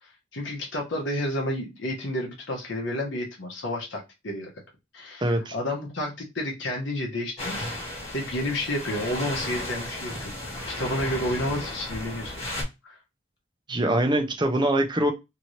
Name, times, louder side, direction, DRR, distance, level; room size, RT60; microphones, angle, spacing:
voice 1, 0.0-4.5 4.9-7.7 8.1-13.0, left 1 dB, 60° left, 0 dB, 0.8 m, -31 dB
voice 2, 5.2-5.5 13.7-15.1, right 1 dB, 20° right, 5 dB, 0.5 m, -23 dB
sound 1, 7.4-12.6, left 1 dB, 30° left, 1.3 m, -34 dB
2.9 x 2.6 x 3.0 m, 0.24 s
head